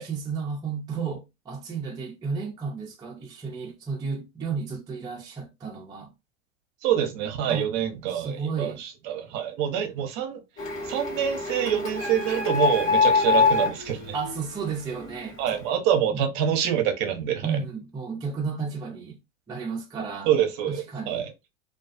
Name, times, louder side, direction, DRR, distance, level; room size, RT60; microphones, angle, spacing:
voice 1, 0.0-6.1 7.5-7.7 8.1-8.8 14.1-15.7 16.1-16.2 17.4-19.2 19.5-20.3 20.7-21.3, right 5 dB, 10° right, 0.5 m, -33 dB
voice 2, 6.8-10.4 10.9-14.1 15.4-17.6 20.2-21.3, right 9 dB, 45° right, 0.7 m, -26 dB
Printer, 10.6-15.2, left 4 dB, 40° left, 1.3 m, -25 dB
2.4 x 2.3 x 2.4 m
hypercardioid pair, 115°, 39 cm